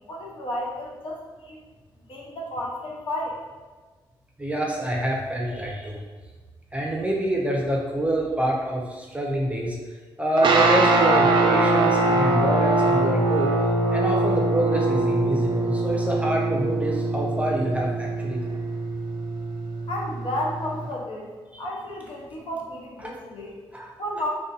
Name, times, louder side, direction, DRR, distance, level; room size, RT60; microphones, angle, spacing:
voice 1, 0.0-1.6 2.1-3.4 19.9-21.3 21.6-23.6 24.0-24.3, left 1 dB, 55° left, -3 dB, 0.7 m, -32 dB
voice 2, 4.4-6.0 6.7-9.8 10.2-13.5 13.9-18.4 21.5-21.6 23.0-23.1 23.7-23.9, right 1 dB, 15° right, -2 dB, 0.6 m, -26 dB
sound 1, 10.4-20.9, right 2 dB, 50° right, 0.4 m, -23 dB
2.5 x 2.3 x 2.4 m, 1.4 s
hypercardioid pair, 45°, 10 cm